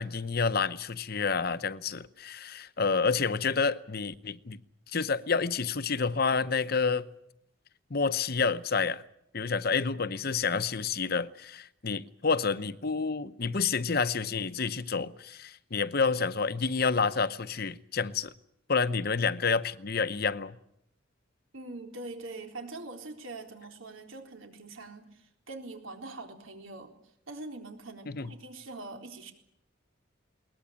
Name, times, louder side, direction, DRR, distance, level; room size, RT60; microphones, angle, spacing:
voice 1, 0.0-4.6 4.9-7.1 7.9-9.0 9.3-18.3 18.7-20.6 28.1-28.3, left 5 dB, 50° left, 0.9 m, -29 dB
voice 2, 21.5-26.9 27.3-29.3, right 2 dB, 90° right, 4.0 m, -43 dB
22.0 x 19.5 x 8.8 m
head